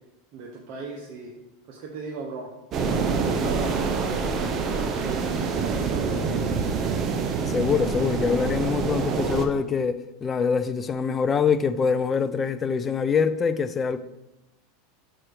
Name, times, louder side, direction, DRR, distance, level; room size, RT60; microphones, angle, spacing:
voice 1, 0.3-1.3 1.7-2.5 2.8-4.2 4.7-6.3, right 4 dB, 55° right, 1.1 m, -37 dB
sound 1, 2.7-9.5, right 5 dB, 40° right, 0.8 m, -26 dB
voice 2, 7.5-14.0, left 6 dB, 25° left, 0.4 m, -24 dB
6.2 x 4.4 x 4.8 m
supercardioid pair, 115°, 0 cm